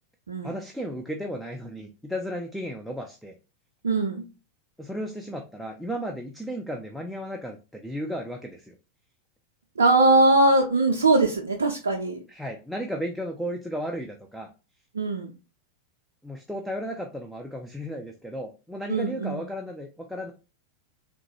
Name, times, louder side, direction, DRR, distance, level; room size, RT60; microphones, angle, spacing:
voice 1, 0.4-3.3 4.8-8.8 12.3-14.5 16.2-20.3, equal, ahead, 2 dB, 0.4 m, -34 dB
voice 2, 3.8-4.2 9.8-12.2 14.9-15.3 18.9-19.4, right 2 dB, 70° right, 0 dB, 0.4 m, -21 dB
3.5 x 2.2 x 2.9 m, 0.32 s
figure-of-eight pair, 90°, 0 cm